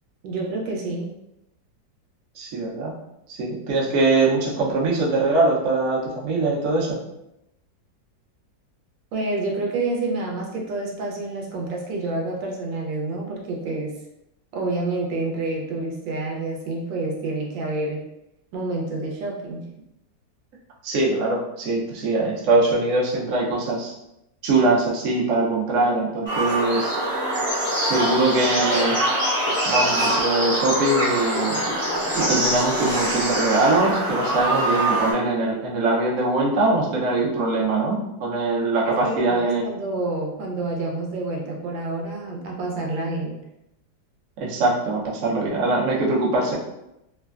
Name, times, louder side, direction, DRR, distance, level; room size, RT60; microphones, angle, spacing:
voice 1, 0.2-1.1 9.1-13.9 14.5-18.0 18.5-19.6 38.8-43.4, right 2 dB, 85° right, -1 dB, 1.3 m, -28 dB
voice 2, 2.4-2.9 3.3-7.0 20.8-23.9 24.4-26.9 27.8-29.0 29.3-31.6 32.2-39.7 44.4-46.5, right 2 dB, 60° right, -4 dB, 0.9 m, -22 dB
sound 1, 26.3-35.1, right 1 dB, 35° right, 0.5 m, -23 dB
3.2 x 2.1 x 2.3 m, 0.86 s
omnidirectional pair, 2.0 m